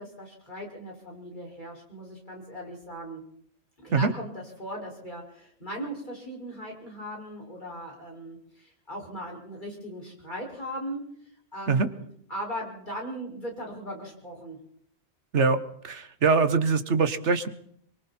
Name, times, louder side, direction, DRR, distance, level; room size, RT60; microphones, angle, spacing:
voice 1, 0.0-3.2 3.8-11.0 11.5-12.0 12.3-14.6, equal, 45° left, -1 dB, 6.6 m, -38 dB
voice 2, 15.8-17.5, right 4 dB, 85° right, 11 dB, 1.6 m, -23 dB
25.5 x 23.5 x 4.5 m, 0.66 s
omnidirectional pair, 1.1 m